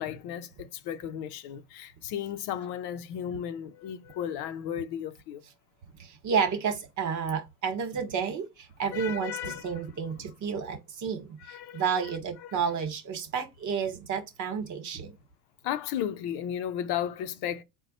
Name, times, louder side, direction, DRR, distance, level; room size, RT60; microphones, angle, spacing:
voice 1, 0.0-5.4 8.9-9.7 11.5-12.1 12.4-12.6 15.6-17.6, left 10 dB, 60° left, 0.7 m, -34 dB
voice 2, 6.0-15.2, right 6 dB, 40° right, 1.4 m, -31 dB
4.0 x 2.3 x 4.1 m
supercardioid pair, 105°, 45 cm